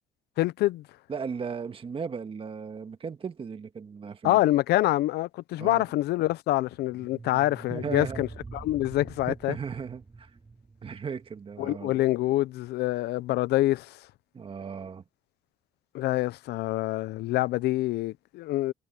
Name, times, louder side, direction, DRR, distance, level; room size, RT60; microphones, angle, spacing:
voice 1, 0.4-0.8 4.2-8.3 8.5-9.5 11.6-14.0 15.9-18.7, left 16 dB, 75° left, 0.7 m, -26 dB
voice 2, 1.1-4.4 5.6-5.9 7.7-8.2 9.5-10.3 10.8-12.0 14.3-15.0, right 6 dB, 30° right, 1.8 m, -36 dB
sound 1, 6.7-11.8, right 4 dB, 15° right, 0.7 m, -45 dB
cardioid pair, 110°, 17 cm